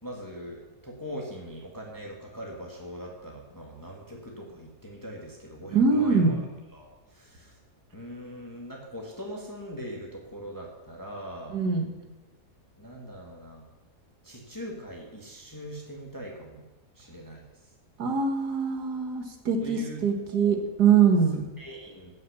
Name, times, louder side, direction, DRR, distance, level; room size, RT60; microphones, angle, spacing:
voice 1, 0.0-6.4 6.7-7.6 7.9-11.6 12.8-13.6 14.2-16.6 17.0-17.4 19.6-20.6 21.6-22.1, equal, 10° left, -1 dB, 2.0 m, -41 dB
voice 2, 5.7-6.4 11.5-11.8 18.0-21.4, right 5 dB, 80° right, 4 dB, 2.2 m, -23 dB
14.0 x 6.5 x 8.2 m, 1.1 s
omnidirectional pair, 1.7 m